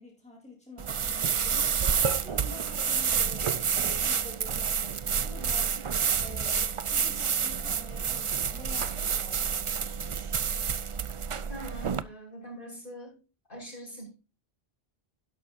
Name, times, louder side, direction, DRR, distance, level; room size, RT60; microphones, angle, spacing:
voice 1, 0.0-5.9 6.2-9.8, left 1 dB, 5° left, -2 dB, 3.3 m, -48 dB
sound 1, 0.8-12.0, right 7 dB, 45° right, 0.4 m, -29 dB
voice 2, 11.5-13.2 13.5-14.1, equal, 55° left, -3 dB, 6.2 m, -42 dB
12.0 x 11.0 x 2.6 m, 0.30 s
omnidirectional pair, 1.1 m